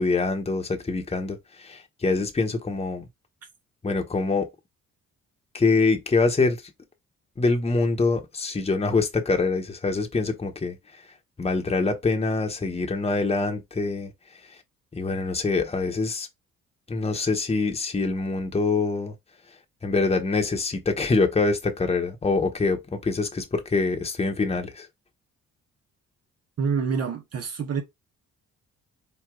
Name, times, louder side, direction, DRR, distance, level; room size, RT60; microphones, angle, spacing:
voice 1, 0.0-3.0 3.8-4.5 5.5-6.6 7.4-10.7 11.4-14.1 14.9-16.3 16.9-19.1 19.8-24.9, left 3 dB, 20° left, 1.1 m, -25 dB
voice 2, 26.6-27.8, right 6 dB, 55° right, 1.2 m, -27 dB
4.6 x 2.6 x 3.7 m
cardioid pair, 90°, 30 cm